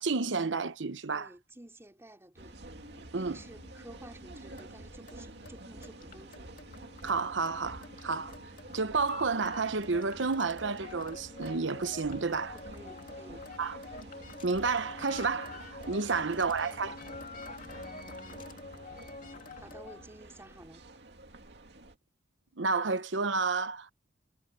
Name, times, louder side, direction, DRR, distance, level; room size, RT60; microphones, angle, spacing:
voice 1, 0.0-1.3 3.1-3.4 7.0-8.3 8.7-12.6 13.6-13.8 14.4-17.0 22.6-23.9, right 4 dB, 80° right, 0.9 m, -31 dB
voice 2, 1.1-2.6 3.1-6.5 12.7-13.5 19.5-20.9, right 1 dB, 15° right, 3.9 m, -52 dB
sound 1, 2.4-22.0, right 2 dB, 65° right, 2.5 m, -49 dB
sound 2, 2.7-20.1, left 3 dB, 45° left, 2.3 m, -48 dB
head